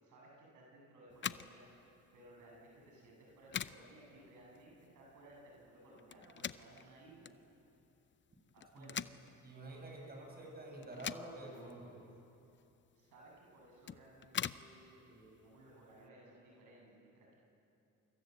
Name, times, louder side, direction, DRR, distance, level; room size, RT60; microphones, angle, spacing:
voice 1, 0.0-7.3 8.5-9.0 13.0-17.4, right 1 dB, 85° right, -3 dB, 7.9 m, -59 dB
sound 1, 1.1-16.1, left 8 dB, 40° left, 0.7 m, -47 dB
voice 2, 9.4-12.0, right 1 dB, 30° right, 0 dB, 7.9 m, -48 dB
28.5 x 26.0 x 8.0 m, 2.8 s
cardioid pair, 90°, 30 cm